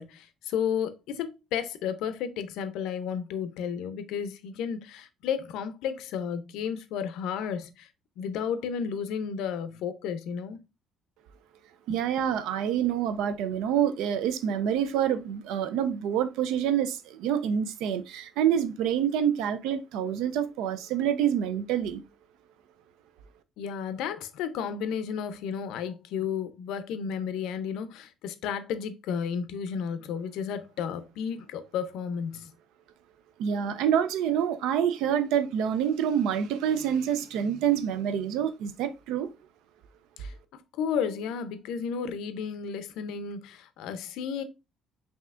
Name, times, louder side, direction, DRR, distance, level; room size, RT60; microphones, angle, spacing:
voice 1, 0.0-7.9 8.2-10.6 11.9-12.0 23.6-32.5 40.2-44.4, left 7 dB, 80° left, 0.5 m, -33 dB
voice 2, 11.9-22.0 33.4-39.3, right 9 dB, 90° right, 0.4 m, -27 dB
5.5 x 2.7 x 2.4 m
cardioid pair, 170°, 0 cm